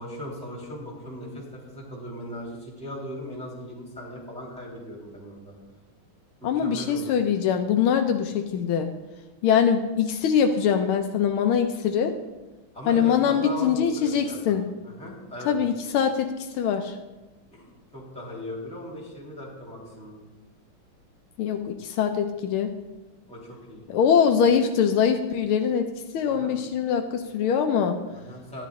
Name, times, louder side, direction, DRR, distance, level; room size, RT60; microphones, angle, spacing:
voice 1, 0.0-5.6 6.4-7.1 12.7-14.6 14.8-15.6 17.5-20.2 23.3-23.9 26.2-26.5 28.1-28.7, equal, 5° left, -5 dB, 3.1 m, -38 dB
voice 2, 6.4-8.9 9.4-12.1 12.9-14.6 15.4-16.9 21.4-22.7 23.9-25.9 26.1-28.0, left 7 dB, 80° left, 6 dB, 1.6 m, -23 dB
12.5 x 10.5 x 3.7 m, 1.1 s
omnidirectional pair, 2.3 m